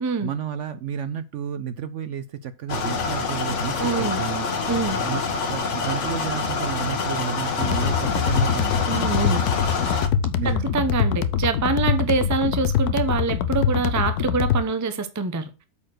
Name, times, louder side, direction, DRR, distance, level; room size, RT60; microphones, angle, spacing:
voice 1, 0.2-4.5 5.0-9.2 10.3-10.7, right 8 dB, 65° right, 0.8 m, -31 dB
sound 1, 2.7-10.1, left 4 dB, 55° left, 1.3 m, -26 dB
voice 2, 3.8-4.2 4.7-5.0 8.9-9.4 10.4-15.5, right 4 dB, 20° right, 0.5 m, -25 dB
sound 2, 7.6-14.6, left 7 dB, 90° left, 1.2 m, -23 dB
8.6 x 4.3 x 6.5 m
omnidirectional pair, 1.6 m